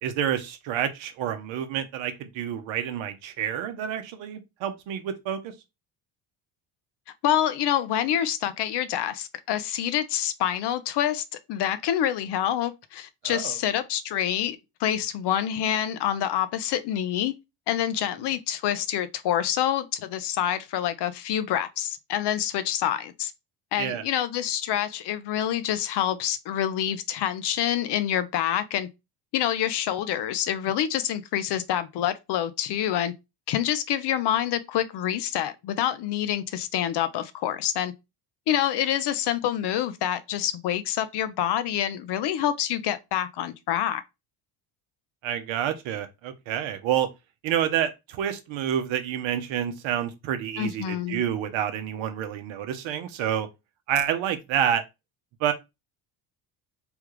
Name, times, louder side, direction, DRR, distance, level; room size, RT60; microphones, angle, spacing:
voice 1, 0.0-5.5 13.2-13.6 23.8-24.0 45.2-47.1 47.4-53.5 53.9-54.8 55.4-55.5, right 10 dB, 70° right, 0.8 m, -28 dB
voice 2, 7.2-17.3 17.7-23.3 23.7-28.9 29.3-33.1 33.5-37.9 38.5-44.0 50.6-51.2, left 11 dB, 55° left, 0.6 m, -27 dB
3.4 x 2.3 x 3.1 m
supercardioid pair, 75°, 49 cm